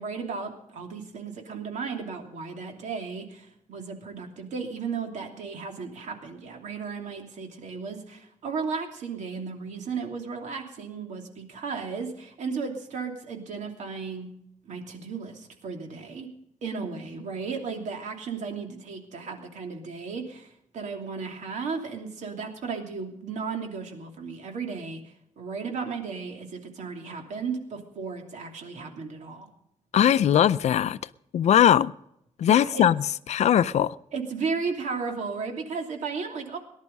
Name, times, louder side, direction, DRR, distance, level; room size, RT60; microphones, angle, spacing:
voice 1, 0.0-14.3 14.6-16.3 16.6-25.0 25.4-29.5 32.4-32.9 34.1-36.6, right 5 dB, 75° right, 2.9 m, -35 dB
voice 2, 29.9-31.0 31.3-31.9 32.4-33.0 33.3-34.0, left 10 dB, 65° left, 0.5 m, -20 dB
19.0 x 11.0 x 5.4 m
wide cardioid pair, 165°, 12 cm